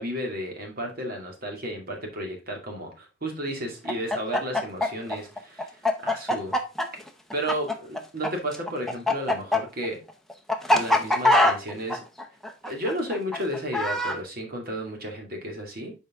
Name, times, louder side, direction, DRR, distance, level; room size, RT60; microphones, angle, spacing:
voice 1, 0.0-6.6 7.3-10.0 10.7-12.0 12.7-15.9, equal, 50° right, 2 dB, 2.2 m, -33 dB
Chicken rooster, 3.8-8.3 8.5-14.2, left 1 dB, ahead, 0.7 m, -23 dB
6.9 x 5.1 x 3.6 m, 0.28 s
head